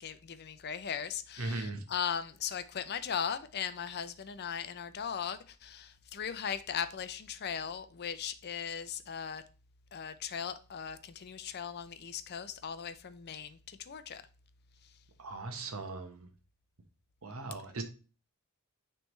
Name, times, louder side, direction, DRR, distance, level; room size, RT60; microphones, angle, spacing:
voice 1, 0.0-9.4 9.9-14.2, left 8 dB, 50° left, 0.5 m, -38 dB
voice 2, 1.4-1.8 15.2-16.3 17.2-17.8, right 2 dB, 70° right, 1.0 m, -38 dB
9.3 x 3.4 x 3.1 m
head